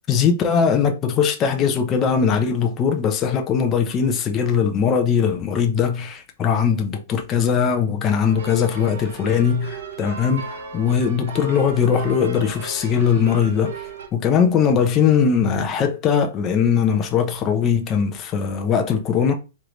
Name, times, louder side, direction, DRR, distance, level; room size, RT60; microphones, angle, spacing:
voice 1, 0.1-19.3, left 7 dB, 20° left, 0.6 m, -20 dB
sound 1, 8.2-14.1, right 6 dB, 80° right, 1.3 m, -36 dB
3.7 x 3.2 x 3.1 m
hypercardioid pair, 165°, 0 cm